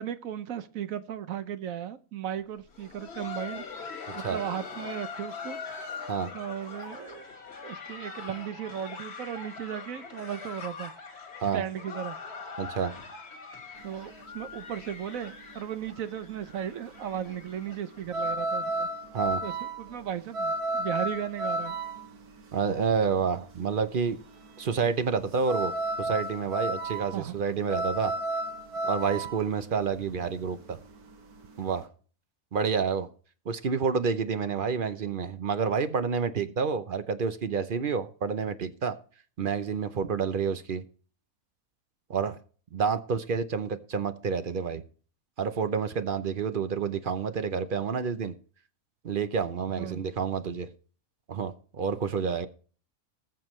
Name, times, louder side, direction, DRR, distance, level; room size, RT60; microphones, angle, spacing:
voice 1, 0.0-3.6 4.1-5.6 6.3-7.2 7.6-10.9 11.5-12.2 13.8-18.9 19.4-21.7 27.1-27.4 49.8-50.0, right 9 dB, 65° right, 1.1 m, -36 dB
Laughter, 2.6-18.3 18.5-18.6 19.2-19.3 19.9-20.1 21.2-21.3, left 5 dB, 85° left, 2.4 m, -42 dB
voice 2, 4.1-4.4 6.1-6.3 11.4-11.6 12.6-13.0 19.1-19.4 22.5-24.2 24.6-28.1 28.8-30.8 31.6-31.9 32.5-33.1 33.5-39.0 39.4-40.8 42.1-42.4 42.7-44.8 45.4-48.3 49.0-50.7 51.3-52.5, right 6 dB, 45° right, 0.7 m, -29 dB
sound 1, 13.8-31.8, right 2 dB, 85° right, 1.8 m, -33 dB
20.0 x 6.8 x 3.1 m
omnidirectional pair, 1.6 m